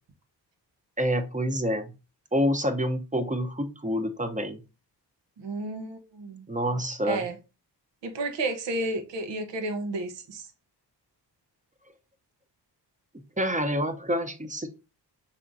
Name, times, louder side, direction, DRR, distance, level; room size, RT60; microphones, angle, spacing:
voice 1, 1.0-1.9 2.3-4.6 6.5-7.2 13.4-14.7, equal, 20° right, 0.8 m, -27 dB
voice 2, 5.4-6.4 7.0-7.4 8.0-10.5, right 2 dB, 90° right, 1.0 m, -32 dB
5.5 x 3.6 x 2.6 m
cardioid pair, 80°, 42 cm